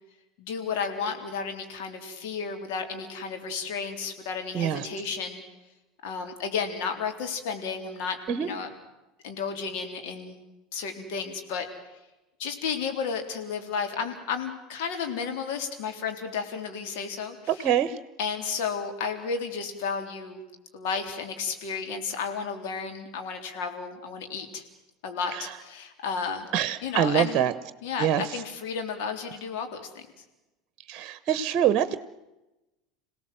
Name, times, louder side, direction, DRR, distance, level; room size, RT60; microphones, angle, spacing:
voice 1, 0.4-5.4 6.0-8.7 9.2-10.4 10.7-11.7 12.4-17.7 18.2-20.4 20.7-24.6 25.0-26.5 26.8-27.5 27.8-30.0, left 5 dB, 65° left, 5 dB, 3.7 m, -32 dB
voice 2, 4.5-4.9 8.3-8.5 17.5-18.0 25.3-25.4 26.5-27.5 28.0-28.4 30.9-32.0, right 9 dB, 45° right, 14 dB, 1.1 m, -25 dB
27.0 x 17.5 x 7.8 m, 1.0 s
hypercardioid pair, 75°, 0 cm